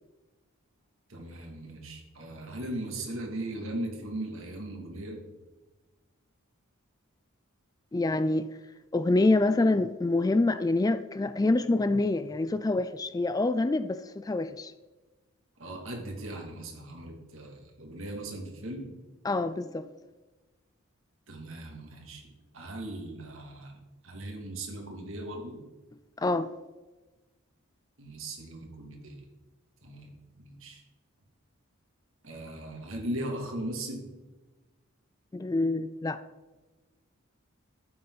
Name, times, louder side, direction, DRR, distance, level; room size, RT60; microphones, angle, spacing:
voice 1, 1.1-5.2 15.6-18.9 21.3-25.6 28.0-29.3 29.8-30.8 32.2-34.1, right 1 dB, 65° right, 1 dB, 2.6 m, -38 dB
voice 2, 7.9-8.5 8.9-14.7 19.2-19.9 26.2-26.5 35.3-36.2, left 2 dB, 15° left, 12 dB, 0.3 m, -26 dB
13.0 x 8.7 x 4.1 m, 1.2 s
head